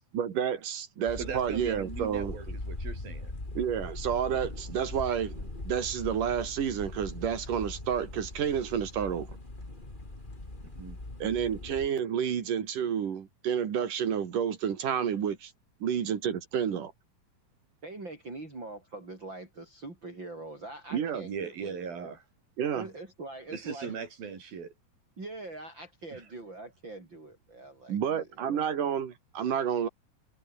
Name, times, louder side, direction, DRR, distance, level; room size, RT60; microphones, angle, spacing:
voice 1, 0.1-2.4 3.6-9.3 11.2-15.5 15.8-16.9 20.9-21.2 22.6-22.9 27.9-29.9, right 8 dB, 65° right, 3.9 m, -30 dB
sound 1, 1.1-11.9, left 2 dB, 15° left, 3.3 m, -41 dB
voice 2, 1.2-3.3 10.8-11.0 21.2-22.2 23.5-24.7 26.1-26.2, right 6 dB, 85° right, 6.0 m, -39 dB
voice 3, 17.8-22.1 22.7-24.0 25.2-28.7, right 2 dB, 30° right, 6.5 m, -43 dB
omnidirectional pair, 4.1 m